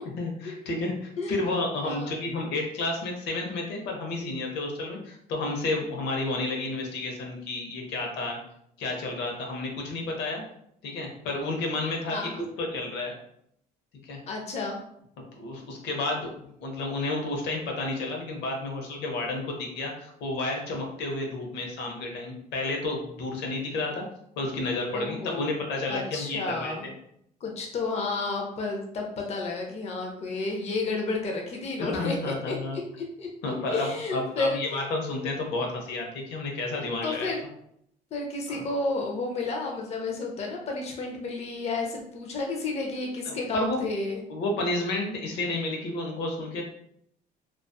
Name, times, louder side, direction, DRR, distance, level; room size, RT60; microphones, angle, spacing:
voice 1, 0.2-8.4 8.8-10.4 10.8-12.3 12.6-13.1 14.0-14.2 15.3-24.0 24.4-26.9 31.9-32.8 33.4-37.3 38.5-38.6 43.2-43.8 44.3-46.6, left 2 dB, 80° left, 1 dB, 0.7 m, -31 dB
voice 2, 1.8-2.2 12.1-12.4 14.3-14.8 24.9-25.5 25.9-26.9 27.4-33.3 33.7-34.6 37.0-37.4 38.1-44.2, left 3 dB, 40° left, 1 dB, 0.5 m, -31 dB
2.5 x 2.3 x 2.2 m, 0.71 s
cardioid pair, 110°, 17 cm